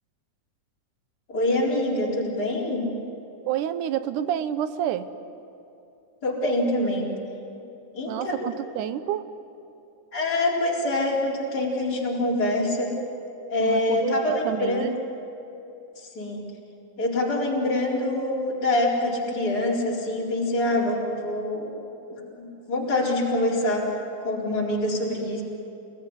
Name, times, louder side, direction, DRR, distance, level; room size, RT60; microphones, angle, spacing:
voice 1, 1.3-2.9 6.2-7.1 7.9-8.5 10.1-12.9 13.5-14.9 16.0-16.4 17.0-21.7 22.1-23.8 24.2-25.4, left 1 dB, 30° left, -4 dB, 4.7 m, -25 dB
voice 2, 3.5-5.1 8.1-9.3 13.6-14.9, right 10 dB, 90° right, 12 dB, 2.5 m, -29 dB
28.5 x 21.5 x 9.8 m, 2.8 s
omnidirectional pair, 3.5 m